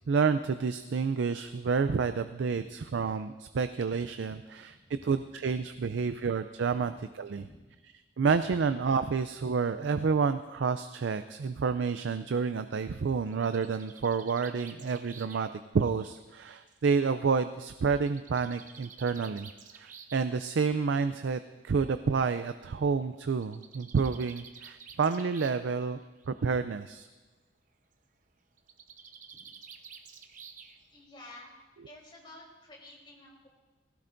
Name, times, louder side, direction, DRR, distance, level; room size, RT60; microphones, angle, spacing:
voice 1, 0.1-4.8 5.0-6.9 7.2-7.4 8.2-15.5 15.7-19.5 19.7-26.0 26.3-27.1, right 5 dB, 80° right, 10 dB, 0.4 m, -29 dB
Bird, 13.1-16.9 17.9-20.3 21.4-21.5 21.8-21.9 22.2-22.3 23.3-25.7 26.0-26.5 28.6-31.0, right 6 dB, 45° right, 0.9 m, -51 dB
voice 2, 30.9-31.5 31.8-33.5, left 1 dB, 25° left, -3 dB, 3.6 m, -51 dB
18.5 x 16.0 x 2.6 m, 1.2 s
head